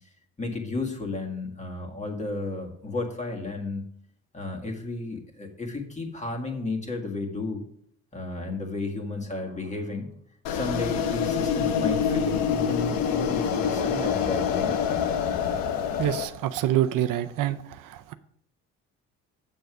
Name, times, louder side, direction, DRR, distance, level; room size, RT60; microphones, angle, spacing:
voice 1, 0.4-3.8 4.3-7.6 8.1-10.1 10.5-14.8, left 2 dB, 20° left, 1.8 m, -33 dB
sound 1, 10.4-16.2, left 7 dB, 80° left, 1.0 m, -26 dB
voice 2, 16.0-18.1, right 12 dB, 65° right, 0.6 m, -26 dB
7.8 x 6.9 x 4.8 m
cardioid pair, 120°, 34 cm